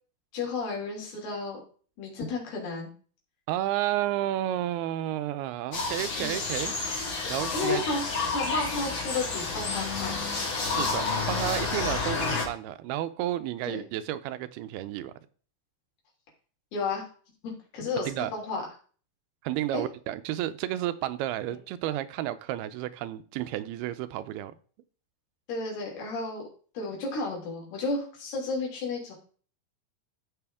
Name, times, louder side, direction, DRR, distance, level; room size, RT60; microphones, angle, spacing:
voice 1, 0.3-1.6 2.0-2.9 6.2-6.4 7.2-10.2 12.0-12.1 13.6-13.9 16.7-17.1 17.4-18.6 19.7-19.8 21.5-21.6 25.5-26.5 26.7-29.1, left 3 dB, 85° left, 5.0 m, -32 dB
voice 2, 3.5-6.7 7.3-7.8 10.6-15.1 18.0-18.3 19.4-24.6, right 13 dB, 90° right, 2.6 m, -31 dB
sound 1, 5.7-12.5, left 4 dB, 40° left, 2.1 m, -30 dB
14.0 x 5.6 x 3.6 m
omnidirectional pair, 4.4 m